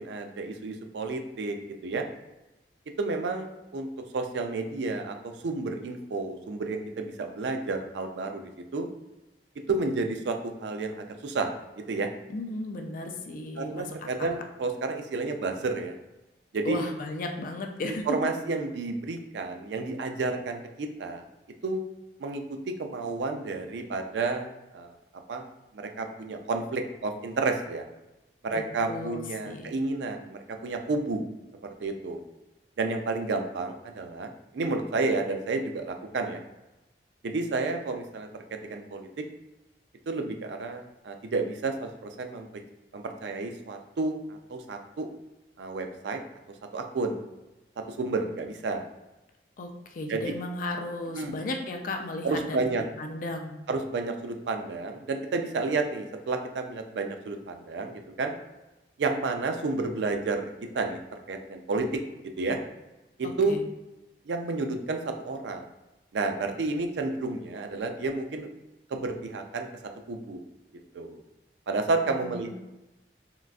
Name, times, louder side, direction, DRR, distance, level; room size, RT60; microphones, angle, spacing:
voice 1, 0.0-1.6 1.8-2.1 3.0-3.9 4.1-8.9 9.7-11.5 11.9-12.1 13.6-16.0 16.5-16.8 17.9-21.2 21.6-21.8 22.2-25.0 25.3-25.5 25.7-27.8 28.4-31.2 31.8-32.2 32.8-36.4 37.2-39.2 40.1-42.5 42.9-45.1 45.6-46.2 46.7-47.2 47.9-48.8 50.1-50.2 51.1-51.4 52.2-52.8 53.7-58.3 59.0-62.0 62.4-62.6 63.2-63.6 64.3-65.7 66.1-68.5 68.9-69.7 70.1-70.4 70.9-71.2 71.7-72.5, right 3 dB, 75° right, 5 dB, 0.4 m, -31 dB
voice 2, 12.3-14.3 16.6-18.2 28.5-28.6 28.9-29.8 49.6-52.6 53.0-53.6 63.2-63.6 72.1-72.5, left 2 dB, 50° left, 4 dB, 0.4 m, -35 dB
3.7 x 2.4 x 2.3 m, 1.0 s
head